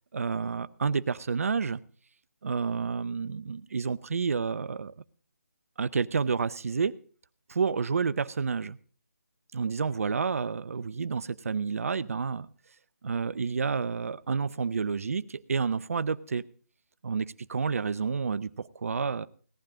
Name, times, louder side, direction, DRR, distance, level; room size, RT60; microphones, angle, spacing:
voice 1, 0.1-1.8 2.4-4.9 5.8-6.9 7.5-8.8 9.5-12.5 13.0-16.4 17.0-19.3, right 5 dB, 60° right, 18 dB, 0.6 m, -29 dB
17.5 x 10.5 x 3.8 m, 0.43 s
figure-of-eight pair, 155°, 9 cm